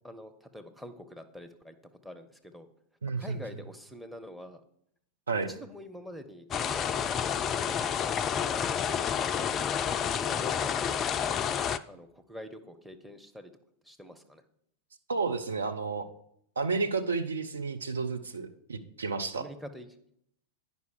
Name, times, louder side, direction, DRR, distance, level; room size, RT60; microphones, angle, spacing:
voice 1, 0.0-1.8 2.0-2.7 3.2-4.6 5.5-7.8 8.8-9.8 10.2-11.2 11.9-13.5 13.8-14.4 19.3-20.0, left 1 dB, ahead, 10 dB, 0.8 m, -46 dB
voice 2, 3.0-3.4 5.3-5.5 15.1-16.1 16.6-19.5, right 4 dB, 70° right, 8 dB, 0.6 m, -31 dB
sound 1, 6.5-11.8, left 8 dB, 25° left, 0.3 m, -29 dB
9.4 x 5.4 x 4.7 m, 0.72 s
figure-of-eight pair, 90°, 0 cm